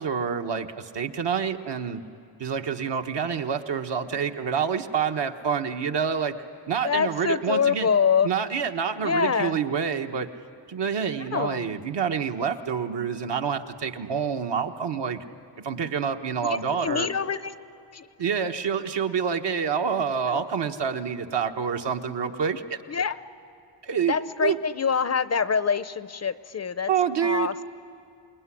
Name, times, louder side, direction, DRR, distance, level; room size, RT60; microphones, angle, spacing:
voice 1, 0.0-2.0 2.4-6.3 6.7-7.9 8.2-10.3 10.7-15.2 15.6-17.1 18.2-22.8 23.8-24.6 26.9-27.6, right 7 dB, 65° right, 5 dB, 1.3 m, -27 dB
voice 2, 6.8-8.3 9.0-9.5 11.3-11.7 16.4-17.5 17.9-18.1 20.3-20.4 22.9-23.1 24.1-26.9 27.2-27.6, left 6 dB, 35° left, 14 dB, 0.6 m, -25 dB
27.0 x 20.5 x 9.9 m, 2.4 s
wide cardioid pair, 140°, 45 cm